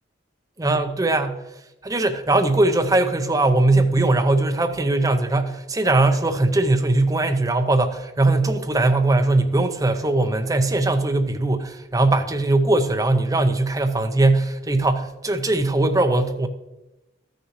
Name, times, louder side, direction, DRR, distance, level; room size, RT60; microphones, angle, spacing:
voice 1, 0.6-1.4 1.8-16.5, right 2 dB, 15° right, 0.6 m, -20 dB
13.5 x 6.6 x 3.1 m
head